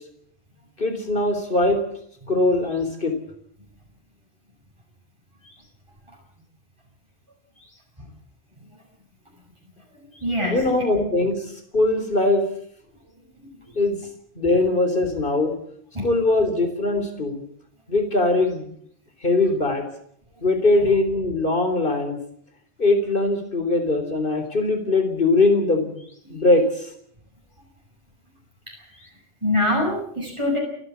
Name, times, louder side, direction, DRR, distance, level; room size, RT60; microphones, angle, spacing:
voice 1, 0.8-1.8 2.3-3.1 10.5-11.4 11.7-12.5 13.8-14.0 14.4-15.5 16.0-17.4 17.9-18.7 19.2-19.9 20.4-22.2 22.8-26.0 26.3-26.9, left 2 dB, 55° left, 6 dB, 4.0 m, -21 dB
voice 2, 9.9-10.9 13.4-13.8 15.9-16.1 26.3-26.5 28.7-28.9 29.4-30.6, left 1 dB, 25° right, -1 dB, 7.3 m, -26 dB
29.5 x 12.0 x 8.5 m, 0.68 s
omnidirectional pair, 1.1 m